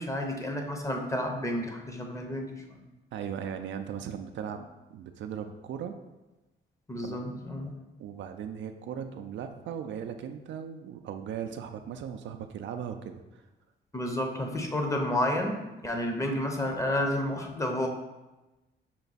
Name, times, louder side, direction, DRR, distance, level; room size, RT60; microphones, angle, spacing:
voice 1, 0.0-2.8 6.9-7.7 13.9-17.9, left 1 dB, 15° left, 2 dB, 0.7 m, -31 dB
voice 2, 3.1-4.7 4.9-6.0 7.0-7.5 8.0-13.4 16.1-16.4, right 8 dB, 70° right, 6 dB, 0.4 m, -38 dB
5.8 x 2.3 x 4.0 m, 1.1 s
cardioid pair, 90°, 20 cm